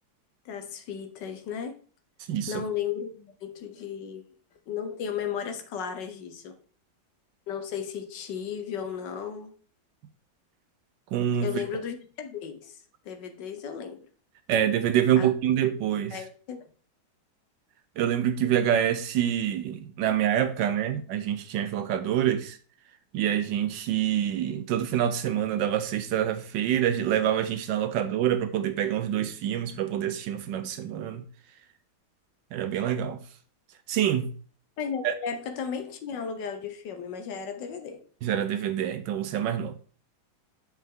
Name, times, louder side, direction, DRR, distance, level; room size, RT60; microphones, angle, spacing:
voice 1, 0.4-1.7 2.5-4.2 4.7-6.5 7.5-9.5 11.4-12.8 13.0-14.0 15.2-15.3 16.1-16.6 34.8-38.0, left 7 dB, 65° left, 1.3 m, -34 dB
voice 2, 2.3-2.6 11.1-11.6 14.5-16.2 18.0-22.6 23.1-31.2 32.5-33.2 33.9-34.3 35.0-35.1 38.2-39.7, right 10 dB, 75° right, 1.2 m, -26 dB
7.3 x 4.6 x 3.7 m
omnidirectional pair, 2.2 m